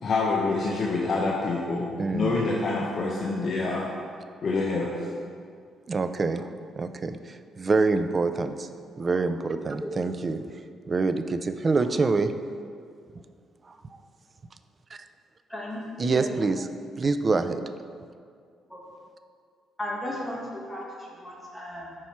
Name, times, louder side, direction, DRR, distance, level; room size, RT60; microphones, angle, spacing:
voice 1, 0.0-3.9 4.4-4.9, left 3 dB, 50° left, -2 dB, 0.6 m, -26 dB
voice 2, 2.0-2.5 4.0-4.2 5.9-8.7 9.0-10.4 10.9-12.3 13.7-13.8 16.0-16.7 17.0-17.6, right 3 dB, 35° right, 10 dB, 0.3 m, -26 dB
voice 3, 15.5-16.3 18.7-18.8 19.8-21.9, left 1 dB, 5° left, -4 dB, 1.5 m, -35 dB
5.6 x 4.6 x 4.3 m, 2.2 s
cardioid pair, 90°, 0 cm